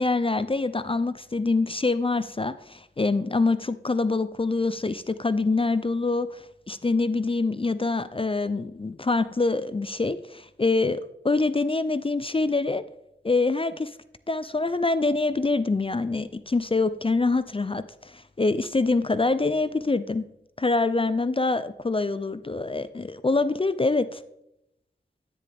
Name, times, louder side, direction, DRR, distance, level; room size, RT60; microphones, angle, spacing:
voice 1, 0.0-12.8 13.2-13.9 14.3-20.2 20.6-24.2, left 3 dB, 30° left, 14 dB, 0.4 m, -25 dB
9.9 x 9.9 x 3.4 m, 0.83 s
wide cardioid pair, 65°, 19 cm